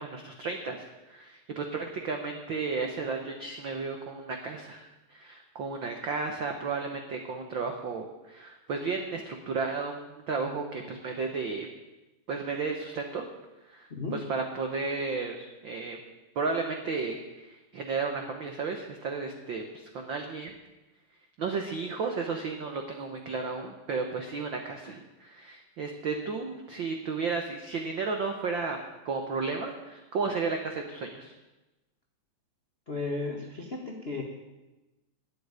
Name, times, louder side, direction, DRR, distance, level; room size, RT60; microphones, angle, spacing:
voice 1, 0.0-11.7 12.3-13.2 13.7-16.0 16.3-19.6 19.9-20.5 21.4-28.8 29.0-31.3, right 4 dB, 80° right, 4 dB, 1.0 m, -33 dB
voice 2, 32.9-34.2, left 3 dB, 55° left, 0 dB, 0.6 m, -34 dB
12.5 x 7.8 x 9.7 m, 1.1 s
omnidirectional pair, 3.7 m